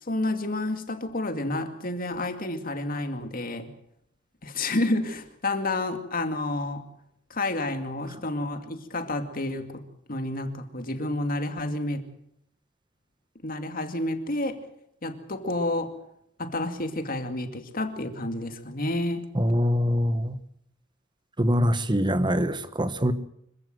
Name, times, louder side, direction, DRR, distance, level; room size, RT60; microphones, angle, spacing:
voice 1, 0.0-3.7 4.4-6.9 7.3-12.1 13.4-14.6 15.0-15.9 16.4-19.3, left 2 dB, 45° left, 2.3 m, -30 dB
voice 2, 19.4-20.4 21.4-23.1, equal, 20° right, 1.2 m, -24 dB
25.5 x 15.5 x 7.9 m
head